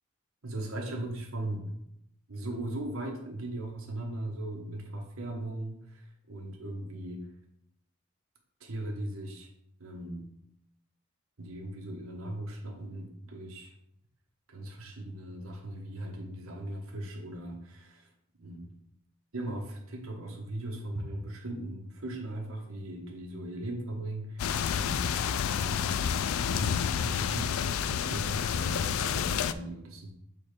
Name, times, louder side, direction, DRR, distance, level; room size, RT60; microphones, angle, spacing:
voice 1, 0.4-1.8 2.3-7.3 8.6-9.5 9.8-10.3 11.4-13.7 14.5-18.1 18.4-18.7 19.3-25.1 25.5-26.1 26.5-30.1, right 1 dB, 85° right, 1 dB, 1.1 m, -38 dB
sound 1, 24.4-29.5, left 7 dB, 85° left, 0.4 m, -29 dB
6.3 x 3.8 x 5.0 m, 0.76 s
head